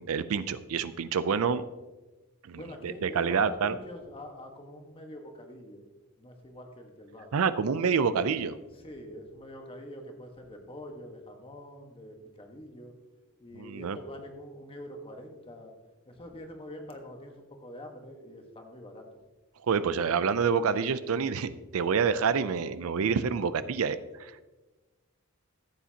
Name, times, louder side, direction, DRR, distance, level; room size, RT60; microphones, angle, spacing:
voice 1, 0.0-1.6 2.5-3.7 7.3-8.6 13.6-14.0 19.7-24.3, right 6 dB, 75° right, 14 dB, 0.5 m, -27 dB
voice 2, 2.6-5.9 6.2-7.3 8.7-12.9 13.4-15.7 16.1-19.1, equal, 25° left, 3 dB, 1.3 m, -45 dB
14.0 x 8.3 x 2.8 m, 1.2 s
head